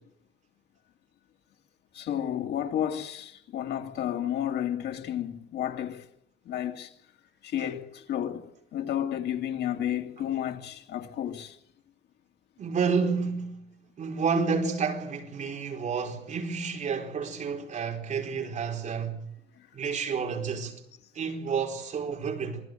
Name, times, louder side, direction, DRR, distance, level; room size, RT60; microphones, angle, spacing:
voice 1, 1.9-6.0 6.5-6.9 7.4-11.6, left 10 dB, 80° left, 2.3 m, -32 dB
voice 2, 12.6-13.7 14.0-19.3 19.7-20.7 21.1-22.6, right 5 dB, 45° right, 4.3 m, -30 dB
27.5 x 20.0 x 7.7 m
cardioid pair, 150°, 17 cm